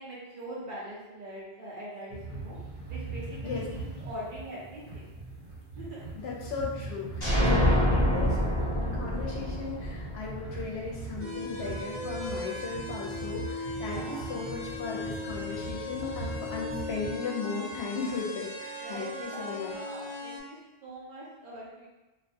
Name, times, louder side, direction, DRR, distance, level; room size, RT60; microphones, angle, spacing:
voice 1, 0.0-2.6 2.9-5.1 5.8-6.0 7.5-7.9 13.8-14.3 18.8-21.9, right 1 dB, 55° right, -6 dB, 0.7 m, -42 dB
sound 1, 2.1-17.1, right 3 dB, 80° right, 1.0 m, -41 dB
voice 2, 6.1-8.4 8.7-19.8, left 4 dB, 70° left, -3 dB, 0.8 m, -36 dB
sound 2, 7.2-10.9, equal, 25° left, 0.8 m, -26 dB
sound 3, 11.2-20.4, left 2 dB, 45° left, 0.5 m, -38 dB
2.4 x 2.2 x 2.6 m, 1.1 s
omnidirectional pair, 1.1 m